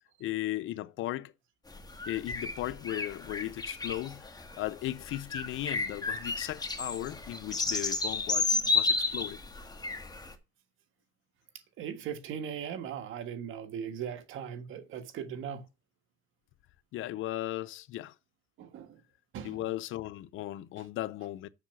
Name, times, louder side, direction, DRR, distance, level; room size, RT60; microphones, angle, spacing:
voice 1, 0.2-1.3 2.1-4.3 4.6-9.4 16.9-18.1 19.4-21.5, left 15 dB, 85° left, 0.6 m, -36 dB
sound 1, 1.7-10.3, left 3 dB, 20° left, 1.5 m, -32 dB
voice 2, 11.8-15.7 18.6-19.0 19.3-19.6, right 8 dB, 85° right, 1.6 m, -39 dB
7.1 x 6.4 x 5.9 m
cardioid pair, 90°, 20 cm